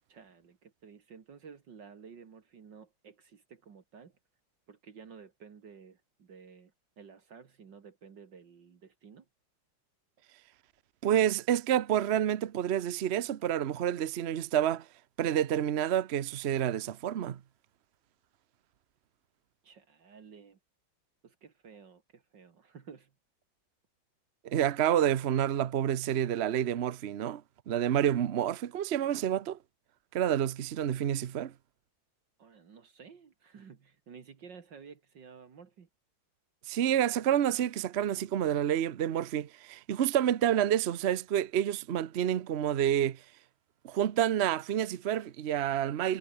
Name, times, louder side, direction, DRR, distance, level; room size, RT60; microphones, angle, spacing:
voice 1, 0.1-4.2 4.7-9.3 19.6-20.6 21.2-23.1 32.4-35.9, right 6 dB, 55° right, 2.4 m, -53 dB
voice 2, 11.0-14.9 15.2-17.4 24.4-29.6 30.1-31.5 36.7-43.2 43.8-46.2, right 10 dB, 80° right, 0.5 m, -28 dB
omnidirectional pair, 2.3 m